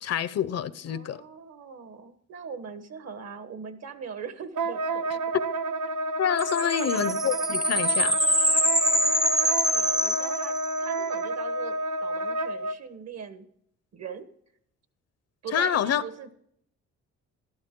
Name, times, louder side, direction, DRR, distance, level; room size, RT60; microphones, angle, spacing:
voice 1, 0.0-1.2 6.2-8.2 15.5-16.0, left 9 dB, 55° left, 0.7 m, -27 dB
voice 2, 0.9-5.2 6.6-6.9 8.9-13.4 13.9-14.3 15.4-16.3, right 6 dB, 60° right, 1.4 m, -41 dB
Wind instrument woodwind instrument, 4.6-12.8, right 2 dB, 80° right, 0.8 m, -30 dB
sound 1, 6.4-11.0, equal, ahead, 0.3 m, -25 dB
12.5 x 12.0 x 3.7 m
cardioid pair, 90°, 30 cm